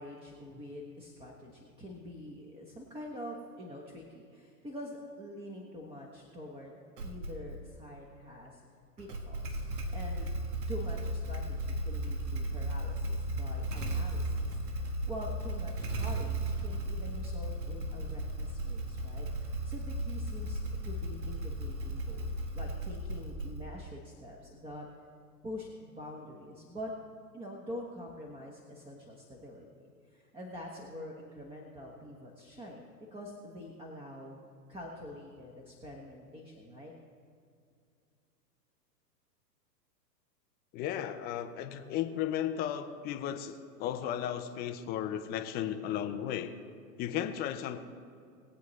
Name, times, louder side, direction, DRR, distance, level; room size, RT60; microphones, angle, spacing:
voice 1, 0.0-6.8 7.0-8.6 9.0-9.6 9.9-10.3 10.7-24.9 25.4-26.9 27.3-32.8 33.1-34.4 34.7-36.9, left 1 dB, 10° right, -1 dB, 1.2 m, -45 dB
Motorcycle / Engine starting, 7.0-7.6 9.0-23.9, right 1 dB, 70° right, 1.6 m, -35 dB
voice 2, 40.7-43.5 43.8-46.5 47.0-47.8, left 10 dB, 20° left, 7 dB, 0.6 m, -34 dB
21.0 x 8.2 x 3.2 m, 2.3 s
hypercardioid pair, 125°, 50 cm